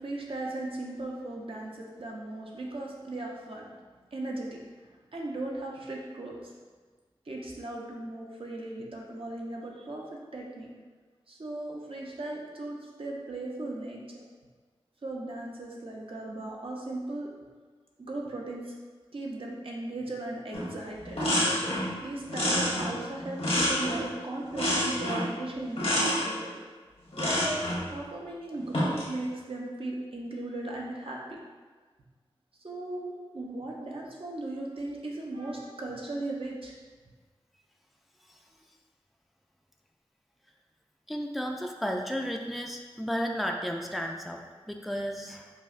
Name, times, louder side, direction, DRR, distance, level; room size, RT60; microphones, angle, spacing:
voice 1, 0.0-3.7 4.1-4.6 5.1-6.5 7.2-10.7 11.3-14.2 15.0-17.3 18.0-18.7 19.1-21.2 22.0-26.5 27.2-27.4 27.9-31.4 32.6-36.7, right 2 dB, 65° right, -2 dB, 0.7 m, -37 dB
sound 1, 20.5-20.7 21.0-21.9 22.3-24.1 24.5-25.3 25.8-26.3 27.1-27.8 28.6-29.1, left 1 dB, 80° left, 1.0 m, -28 dB
voice 2, 41.1-45.5, equal, ahead, 2 dB, 0.3 m, -33 dB
5.4 x 2.1 x 2.4 m, 1.4 s
wide cardioid pair, 45°, 10 cm